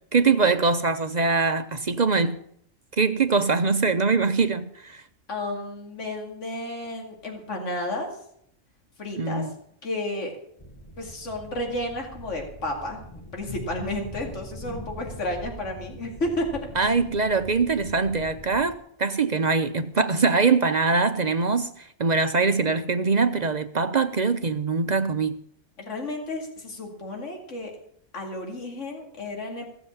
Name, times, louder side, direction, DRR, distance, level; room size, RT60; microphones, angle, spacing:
voice 1, 0.1-2.4 3.0-5.0 9.2-9.5 16.8-25.4, right 4 dB, 45° right, 0.6 m, -23 dB
voice 2, 5.3-8.1 9.0-9.5 9.8-10.3 11.0-16.9 25.8-27.7 28.1-29.7, left 1 dB, 70° left, 2.6 m, -32 dB
sound 1, 10.6-18.8, equal, 25° left, 1.6 m, -42 dB
16.0 x 7.7 x 7.1 m
omnidirectional pair, 1.3 m